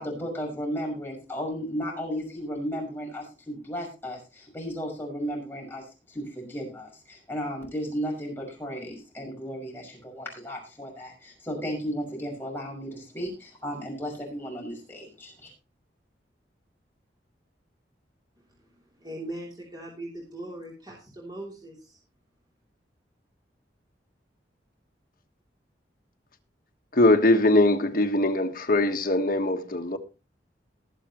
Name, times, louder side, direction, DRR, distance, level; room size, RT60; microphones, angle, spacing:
voice 1, 0.0-15.5, equal, 10° left, 6.0 m, -34 dB
voice 2, 18.4-22.0, right 1 dB, 25° right, 3.1 m, -40 dB
voice 3, 26.9-30.0, left 1 dB, 50° left, 1.4 m, -21 dB
20.5 x 7.5 x 3.0 m
head